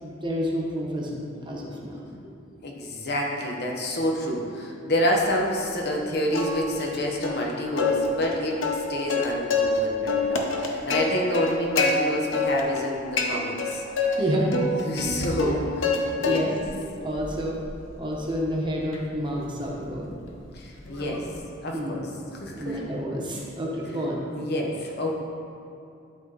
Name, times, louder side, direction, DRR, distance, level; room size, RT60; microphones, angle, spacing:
voice 1, 0.0-2.1 14.1-14.5 15.4-15.6 16.0-16.5 17.0-17.6 17.9-20.1 21.7-22.0 22.6-24.2, equal, 25° right, -3 dB, 1.1 m, -29 dB
voice 2, 2.6-8.6 8.9-14.2 14.8-15.6 16.2-16.5 20.5-21.3 21.6-22.9 24.3-25.1, left 1 dB, 55° left, -1 dB, 1.1 m, -28 dB
Plucked string instrument, 6.3-7.0 7.2-7.4 7.8-9.8 10.1-11.9 12.3-12.9 13.2-14.1 14.5-16.0 16.2-16.7 17.1-21.4, left 4 dB, 85° left, 0.9 m, -27 dB
12.0 x 4.2 x 4.0 m, 2.6 s
head